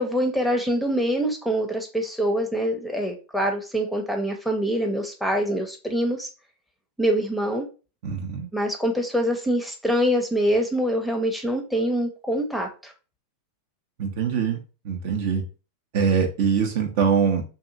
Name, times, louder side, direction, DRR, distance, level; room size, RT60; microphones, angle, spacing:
voice 1, 0.0-6.3 7.0-7.7 8.5-12.9, equal, ahead, 3 dB, 0.6 m, -24 dB
voice 2, 8.0-8.5 14.0-15.4 15.9-17.4, right 6 dB, 60° right, 3 dB, 0.6 m, -23 dB
2.7 x 2.4 x 2.5 m, 0.33 s
hypercardioid pair, 95°, 0 cm